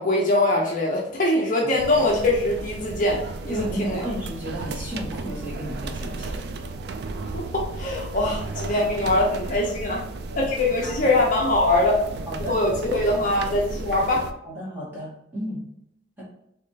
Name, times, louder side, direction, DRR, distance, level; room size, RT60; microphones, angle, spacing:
voice 1, 0.0-4.0 7.3-10.0 10.4-12.0 12.4-14.3, left 2 dB, 40° left, -2 dB, 0.6 m, -22 dB
sound 1, 1.8-14.3, right 3 dB, 55° right, 0.3 m, -34 dB
voice 2, 3.5-6.4 9.6-10.0 10.8-11.1 12.3-12.6 14.4-15.6 16.2-16.3, equal, 10° right, -7 dB, 1.4 m, -33 dB
3.4 x 3.3 x 2.7 m, 0.77 s
head